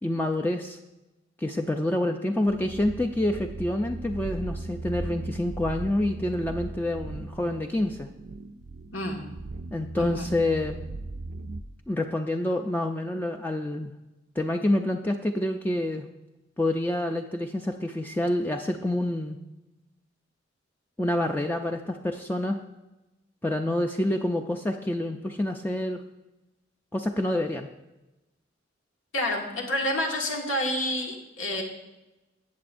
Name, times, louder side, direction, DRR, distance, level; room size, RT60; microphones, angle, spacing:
voice 1, 0.0-0.8 1.4-8.1 9.7-10.8 11.9-13.9 14.4-16.1 16.6-19.4 21.0-22.6 23.4-26.0 26.9-27.7, left 1 dB, 10° left, 4 dB, 0.3 m, -27 dB
sound 1, 2.5-11.6, right 2 dB, 55° right, 0.4 m, -38 dB
voice 2, 8.9-9.2 10.0-10.3 29.1-31.6, left 1 dB, 90° left, 0 dB, 1.7 m, -29 dB
17.0 x 6.9 x 2.6 m, 1.0 s
head